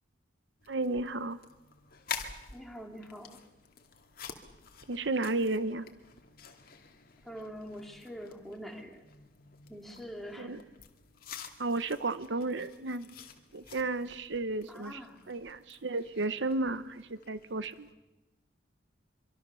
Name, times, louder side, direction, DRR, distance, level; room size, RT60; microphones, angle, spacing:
sound 1, 0.6-17.9, left 7 dB, 50° left, 2.2 m, -49 dB
voice 1, 0.7-1.4 4.9-5.9 10.4-10.6 11.6-13.1 13.5-15.0 15.3-17.9, right 2 dB, 70° right, 13 dB, 0.9 m, -33 dB
voice 2, 2.5-3.4 7.2-9.0 9.7-10.6 14.7-15.3, equal, ahead, 2 dB, 3.0 m, -44 dB
25.5 x 24.5 x 6.9 m, 1.0 s
head